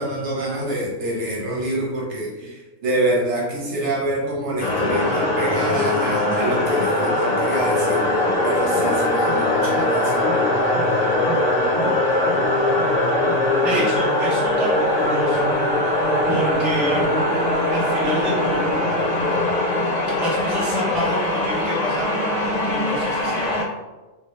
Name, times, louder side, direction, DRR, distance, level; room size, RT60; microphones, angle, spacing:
voice 1, 0.0-10.3 16.3-16.4, right 1 dB, 60° right, -3 dB, 1.1 m, -26 dB
sound 1, 4.6-23.6, left 1 dB, 70° left, 1.0 m, -21 dB
voice 2, 13.6-15.5 16.3-17.1 17.7-18.7 20.2-23.6, right 1 dB, ahead, -6 dB, 0.4 m, -29 dB
2.7 x 2.7 x 3.1 m, 1.1 s
omnidirectional pair, 1.4 m